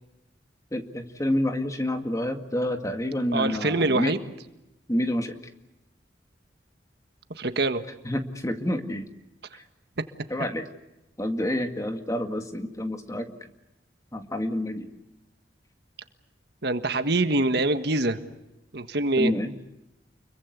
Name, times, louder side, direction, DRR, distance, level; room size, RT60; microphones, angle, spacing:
voice 1, 0.7-4.1 4.9-5.3 8.1-9.1 10.3-10.7 11.2-13.3 14.1-14.9 19.2-19.5, left 1 dB, 20° left, 6 dB, 2.0 m, -28 dB
voice 2, 3.3-4.2 7.4-7.8 16.6-18.2 18.7-19.3, right 2 dB, 60° right, 9 dB, 1.5 m, -24 dB
29.5 x 23.0 x 8.2 m, 0.94 s
head